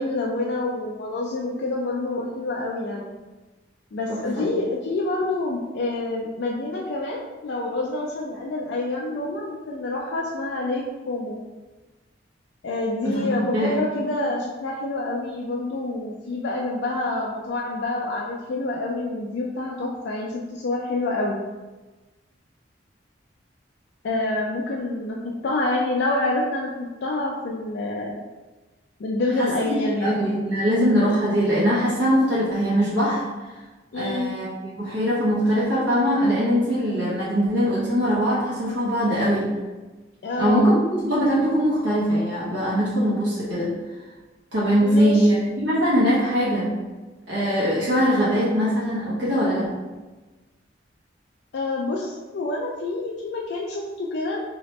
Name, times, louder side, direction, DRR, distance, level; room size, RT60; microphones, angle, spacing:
voice 1, 0.0-3.1 3.9-11.4 12.6-21.4 24.0-28.1 29.0-30.1 33.9-34.4 40.2-40.7 44.8-45.3 51.5-54.4, left 2 dB, 65° left, -2 dB, 0.4 m, -27 dB
voice 2, 4.1-4.5 13.0-13.8 29.4-29.5 30.0-33.3 33.9-39.5 40.4-43.7 44.5-46.7 47.3-49.8, equal, 75° right, -8 dB, 0.9 m, -22 dB
2.9 x 2.9 x 3.1 m, 1.2 s
head